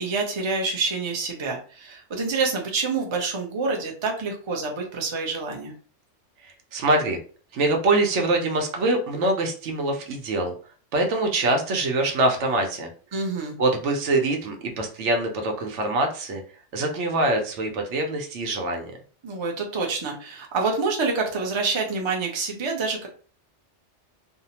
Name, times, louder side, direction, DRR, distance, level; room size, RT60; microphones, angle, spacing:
voice 1, 0.0-5.7 13.1-13.6 19.2-23.1, right 4 dB, 35° right, 1 dB, 0.5 m, -27 dB
voice 2, 6.4-7.2 7.5-10.5 10.9-12.9 13.6-16.4 16.7-18.9, right 2 dB, 80° right, 3 dB, 1.0 m, -24 dB
2.7 x 2.0 x 2.8 m, 0.40 s
omnidirectional pair, 1.2 m